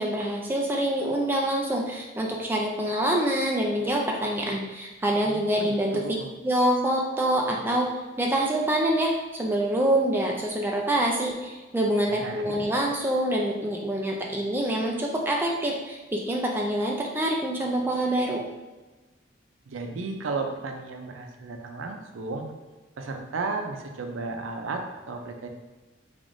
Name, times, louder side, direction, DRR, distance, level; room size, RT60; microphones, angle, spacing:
voice 1, 0.0-6.1 6.4-7.9 8.2-18.4, right 1 dB, 10° right, -1 dB, 0.3 m, -26 dB
voice 2, 5.3-6.3 12.1-12.5 19.7-22.5 23.0-25.5, right 3 dB, 85° right, 4 dB, 0.5 m, -34 dB
3.5 x 3.5 x 2.5 m, 1.2 s
head